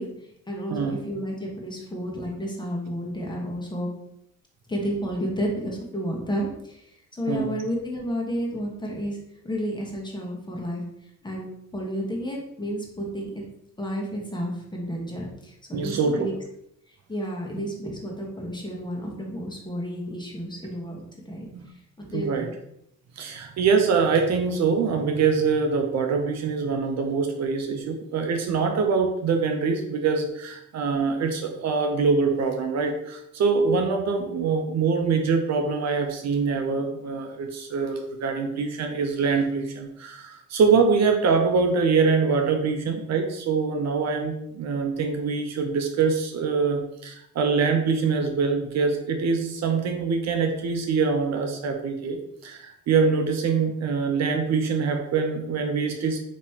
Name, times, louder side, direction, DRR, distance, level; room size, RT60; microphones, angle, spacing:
voice 1, 0.0-3.9 4.7-9.2 9.4-10.8 11.2-13.4 13.8-16.3 17.1-21.5 22.0-22.5, equal, 15° left, -2 dB, 1.2 m, -31 dB
voice 2, 0.7-1.0 7.3-7.5 15.7-16.3 21.5-21.7 22.1-22.5 23.2-56.2, right 5 dB, 60° right, 4 dB, 0.7 m, -24 dB
5.3 x 3.0 x 2.8 m, 0.78 s
cardioid pair, 90°, 30 cm